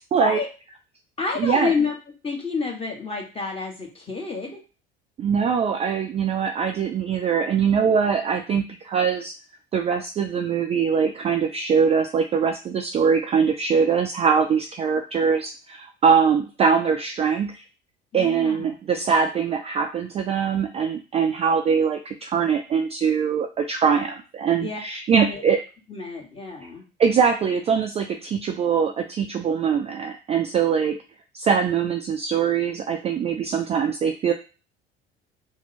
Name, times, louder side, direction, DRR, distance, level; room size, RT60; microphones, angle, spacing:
voice 1, 0.1-0.4 1.4-1.7 5.2-9.3 9.7-17.6 18.1-25.6 26.6-26.7 27.0-31.0 31.3-34.3, right 6 dB, 20° right, 5 dB, 0.3 m, -22 dB
voice 2, 1.2-1.9 2.2-4.6 18.1-18.7 24.6-24.8 25.1-25.4 25.9-26.8, left 4 dB, 20° left, 0 dB, 1.3 m, -28 dB
2.8 x 2.2 x 4.1 m, 0.34 s
figure-of-eight pair, 60°, 30 cm